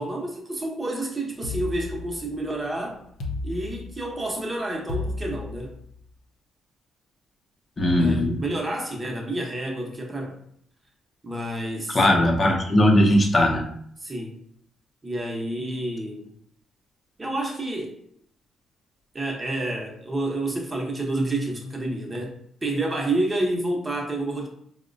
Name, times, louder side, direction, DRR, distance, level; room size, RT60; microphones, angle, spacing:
voice 1, 0.0-3.0 3.4-5.7 8.0-10.4 11.2-12.0 14.0-14.4 15.0-16.3 17.2-18.0 19.1-22.3 22.6-24.5, right 1 dB, 20° right, -1 dB, 0.8 m, -29 dB
sound 1, 1.4-2.5 3.2-4.2 4.9-6.0, left 3 dB, 80° left, 0.6 m, -33 dB
voice 2, 7.8-8.4 11.9-13.6, left 1 dB, 30° left, 1 dB, 0.7 m, -19 dB
4.1 x 2.1 x 2.6 m, 0.67 s
cardioid pair, 90°, 0 cm